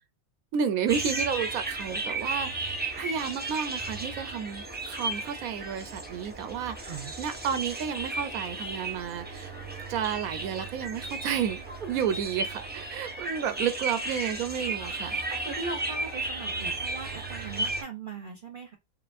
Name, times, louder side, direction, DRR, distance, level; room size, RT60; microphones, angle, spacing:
voice 1, 0.5-9.5 9.9-11.6 11.9-15.2, right 8 dB, 90° right, 1.1 m, -31 dB
sound 1, 0.9-17.8, right 2 dB, 10° right, 0.7 m, -34 dB
voice 2, 15.3-18.8, right 4 dB, 45° right, 0.7 m, -39 dB
4.8 x 2.9 x 2.5 m
omnidirectional pair, 1.4 m